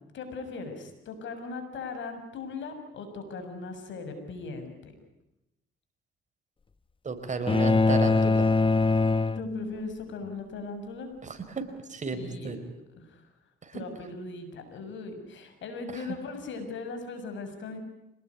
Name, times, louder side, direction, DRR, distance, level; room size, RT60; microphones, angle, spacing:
voice 1, 0.1-4.9 9.3-11.1 12.1-12.6 12.9-13.2 13.7-17.8, left 4 dB, 70° left, 7 dB, 6.7 m, -39 dB
voice 2, 7.0-8.5 11.2-12.6 13.6-13.8 15.9-16.1, right 4 dB, 40° right, 8 dB, 4.6 m, -34 dB
sound 1, 7.5-10.0, left 3 dB, 25° left, 1.0 m, -23 dB
26.0 x 19.5 x 9.6 m, 0.92 s
cardioid pair, 90°, 20 cm